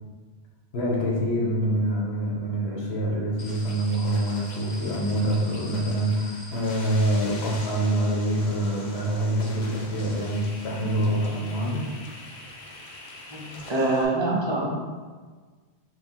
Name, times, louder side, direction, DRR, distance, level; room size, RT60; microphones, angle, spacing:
voice 1, 0.7-11.9, right 1 dB, 75° left, -3 dB, 1.1 m, -25 dB
sound 1, 3.4-14.0, left 2 dB, 50° left, 0.6 m, -43 dB
voice 2, 13.3-14.7, right 2 dB, 30° right, -3 dB, 0.6 m, -25 dB
3.6 x 2.5 x 4.3 m, 1.4 s
omnidirectional pair, 1.1 m